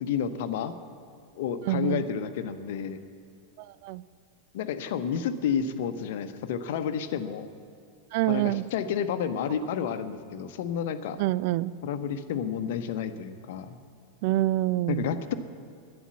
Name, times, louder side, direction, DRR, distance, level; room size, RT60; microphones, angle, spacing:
voice 1, 0.0-0.7 1.4-3.0 4.5-7.5 8.3-11.2 11.8-13.8 14.9-15.3, left 7 dB, 55° left, 10 dB, 0.9 m, -30 dB
voice 2, 1.7-2.0 3.8-4.0 8.1-8.7 11.2-11.7 14.2-15.1, right 16 dB, 45° right, 18 dB, 0.3 m, -26 dB
11.0 x 10.5 x 8.4 m, 2.4 s
figure-of-eight pair, 90°, 0 cm